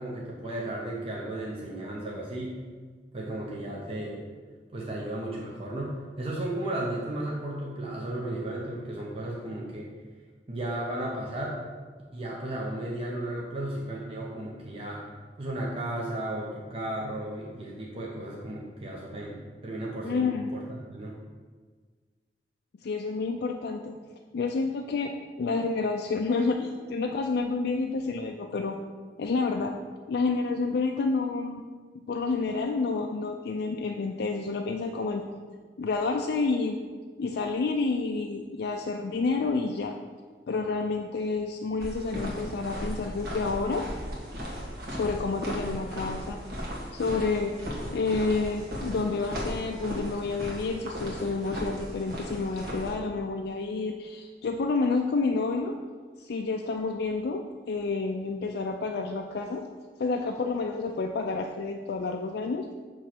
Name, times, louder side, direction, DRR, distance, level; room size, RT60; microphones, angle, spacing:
voice 1, 0.0-2.5 3.1-4.2 4.7-9.9 10.5-11.6 12.1-15.1 15.4-20.2 20.5-21.2, right 1 dB, 35° right, -3 dB, 0.8 m, -34 dB
voice 2, 20.0-20.6 22.8-23.9 24.3-28.8 29.2-29.7 30.1-31.6 32.1-35.2 35.8-36.8 37.2-39.9 40.5-43.8 44.9-46.4 46.9-47.5 47.9-55.7 56.2-59.7 60.0-62.7, left 3 dB, 65° left, 2 dB, 0.4 m, -29 dB
sound 1, 41.8-52.9, equal, 65° right, 1.6 m, -36 dB
6.5 x 3.1 x 5.8 m, 1.5 s
head